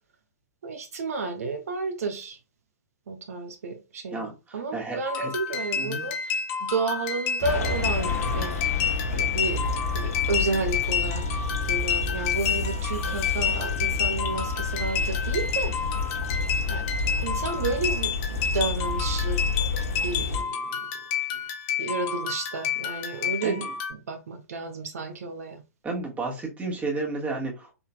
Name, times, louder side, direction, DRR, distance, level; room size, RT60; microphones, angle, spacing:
voice 1, 0.6-2.4 3.1-8.8 9.1-9.6 9.9-11.2 11.7-15.8 16.7-16.8 17.2-19.5 20.0-20.9 21.8-23.6 23.9-25.6, right 3 dB, 60° right, 0.8 m, -31 dB
voice 2, 4.1-5.3 5.8-6.0 23.4-23.7 25.8-27.7, right 3 dB, 15° right, 1.6 m, -32 dB
sound 1, 5.1-23.9, left 7 dB, 35° left, 1.4 m, -30 dB
sound 2, 7.4-20.4, left 3 dB, 60° left, 1.1 m, -29 dB
5.5 x 3.9 x 2.3 m
figure-of-eight pair, 110°, 9 cm